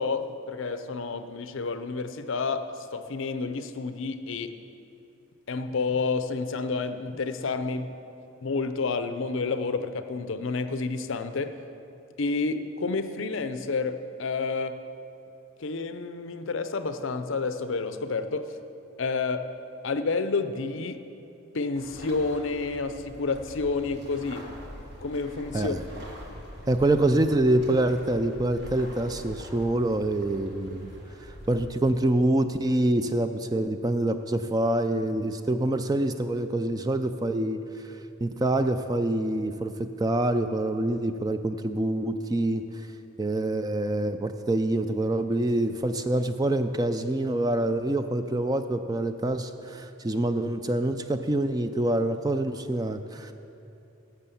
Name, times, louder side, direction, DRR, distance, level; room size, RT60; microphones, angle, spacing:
voice 1, 0.0-2.7 2.9-4.6 5.5-8.0 8.4-11.6 12.2-14.8 15.6-18.5 19.0-19.5 19.8-21.0 21.5-24.5 25.0-25.7 33.5-33.6, left 4 dB, 65° left, 10 dB, 0.6 m, -29 dB
sound 1, 21.7-31.7, equal, 55° right, 1.6 m, -44 dB
voice 2, 26.7-30.9 31.5-37.9 38.2-42.6 43.2-53.3, right 1 dB, 20° right, 9 dB, 0.3 m, -26 dB
11.5 x 7.1 x 7.0 m, 2.8 s
head